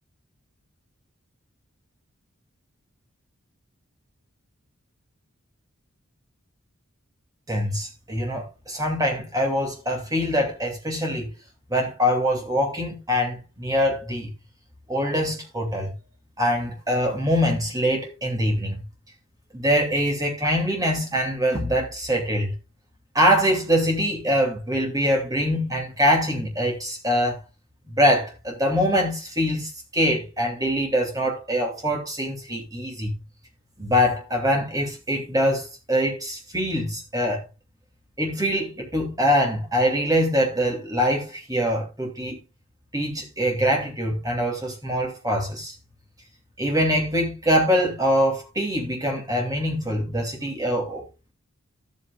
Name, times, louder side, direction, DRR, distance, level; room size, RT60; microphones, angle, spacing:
voice 1, 7.5-11.3 11.7-14.3 14.9-15.9 16.4-18.8 19.5-22.5 23.1-27.4 27.9-33.1 33.8-37.4 38.2-42.4 42.9-45.8 46.6-51.0, equal, 15° right, 2.5 m, -24 dB
13.5 x 8.3 x 2.4 m
head